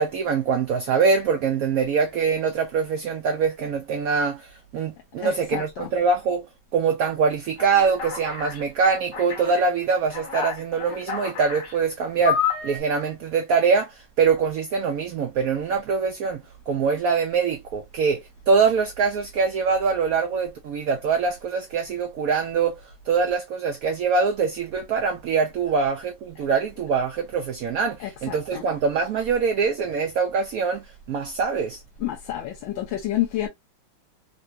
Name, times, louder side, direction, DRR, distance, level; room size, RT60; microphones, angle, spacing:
voice 1, 0.0-6.5 6.7-31.8, right 5 dB, 75° right, 0.8 m, -24 dB
voice 2, 5.2-5.9 28.0-28.6 32.0-33.5, left 13 dB, 85° left, 1.4 m, -29 dB
Alarm, 7.6-8.6 9.1-9.6 10.1-11.7 12.3-12.8, left 8 dB, 70° left, 1.8 m, -29 dB
3.8 x 2.2 x 2.4 m
omnidirectional pair, 2.0 m